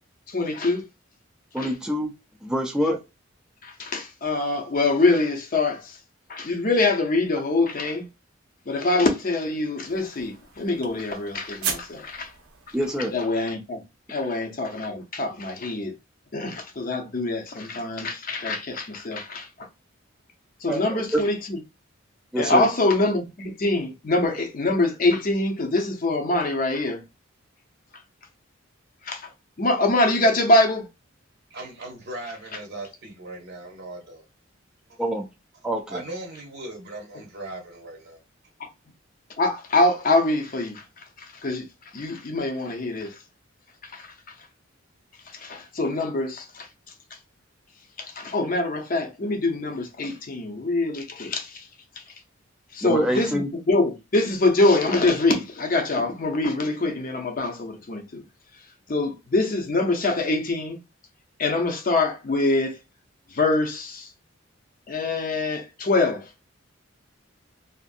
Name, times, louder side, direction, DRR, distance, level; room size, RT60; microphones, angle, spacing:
voice 1, 0.3-0.8 1.6-1.7 2.8-2.9 3.6-6.0 6.3-8.1 8.7-12.3 12.7-12.8 13.1-13.8 14.1-15.9 16.3-19.7 20.6-21.6 22.4-27.0 29.0-29.3 29.6-30.9 39.4-40.8 41.2-41.6 41.9-43.2 43.8-44.3 45.3-46.7 48.0-51.7 52.0-52.1 52.7-58.2 58.9-60.8 61.4-62.8 63.3-64.1 64.9-66.3, left 2 dB, 45° left, 0.6 m, -24 dB
voice 2, 1.5-2.1 2.4-3.0 12.7-13.1 20.7-21.2 22.3-22.7 35.0-35.3 35.6-36.0 52.8-53.5, equal, 5° right, 0.4 m, -26 dB
sound 1, 9.8-13.4, right 6 dB, 90° right, 0.7 m, -37 dB
voice 3, 31.5-34.2 34.9-35.0 35.9-38.2, right 2 dB, 55° right, 0.7 m, -38 dB
2.6 x 2.5 x 2.5 m
head